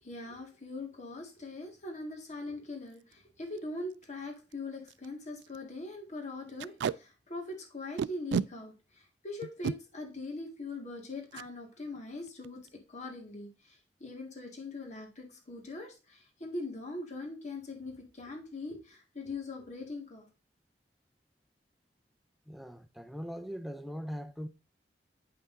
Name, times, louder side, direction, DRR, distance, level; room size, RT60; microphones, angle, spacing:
voice 1, 0.0-20.3, left 2 dB, 40° left, 1.9 m, -42 dB
Packing tape duct tape, 2.9-3.1 3.6-3.7 3.9-4.0 4.5-4.6 4.9-5.1 5.4-5.6 6.6-7.0 8.0-8.5 9.4-9.8 11.3-11.5 11.8-12.0 12.3-12.7, right 7 dB, 80° right, 0.3 m, -32 dB
voice 2, 22.5-24.5, equal, ahead, 0.5 m, -40 dB
8.6 x 5.7 x 2.6 m
head